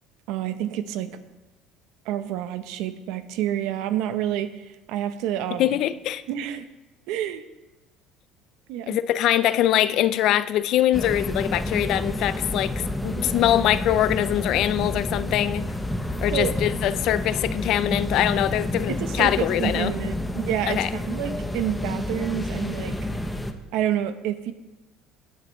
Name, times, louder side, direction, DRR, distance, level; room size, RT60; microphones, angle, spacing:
voice 1, 0.3-1.2 2.0-5.8 6.3-6.7 7.1-7.4 8.7-9.0 16.3-16.5 18.9-23.0 23.7-24.5, right 11 dB, 70° right, 11 dB, 0.8 m, -28 dB
voice 2, 5.6-6.2 8.9-15.6 16.2-19.9 20.7-20.9, left 12 dB, 55° left, 15 dB, 0.5 m, -23 dB
sound 1, 10.9-23.5, left 1 dB, 5° left, 0.7 m, -29 dB
16.5 x 9.5 x 3.1 m, 1.1 s
cardioid pair, 145°, 0 cm